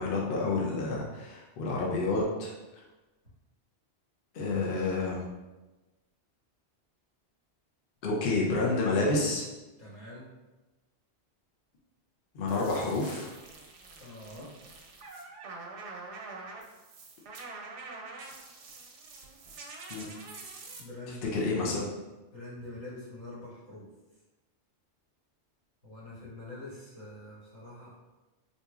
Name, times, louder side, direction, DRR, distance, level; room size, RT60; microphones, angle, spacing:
voice 1, 0.0-2.5 4.3-5.2 8.0-9.4 12.3-13.3 19.9-20.1 21.3-21.9, left 3 dB, 60° left, -3 dB, 0.7 m, -29 dB
voice 2, 9.8-10.3 14.0-14.5 20.8-21.4 22.3-23.9 25.8-28.0, left 2 dB, 90° left, -9 dB, 1.8 m, -45 dB
sound 1, 12.5-20.8, right 3 dB, 90° right, 0.9 m, -46 dB
4.0 x 2.6 x 2.3 m, 1.1 s
omnidirectional pair, 1.2 m